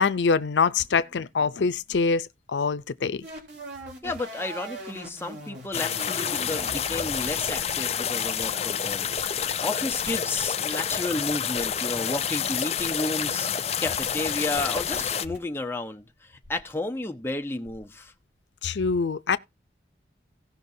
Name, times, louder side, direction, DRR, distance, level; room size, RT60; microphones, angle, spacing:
voice 1, 0.0-3.3 18.6-19.4, left 5 dB, 85° left, 0.5 m, -24 dB
sound 1, 3.2-9.6 9.8-10.4 10.9-11.0 11.6-11.8 12.8-13.1 14.0-15.4 16.4-16.7 17.3-17.4 17.6-18.0, right 1 dB, 85° right, 3.5 m, -41 dB
voice 2, 4.0-9.1 9.6-16.1 16.5-18.1, left 2 dB, 15° left, 0.8 m, -32 dB
sound 2, 5.7-15.3, left 8 dB, 35° left, 0.5 m, -28 dB
17.0 x 5.9 x 2.7 m
head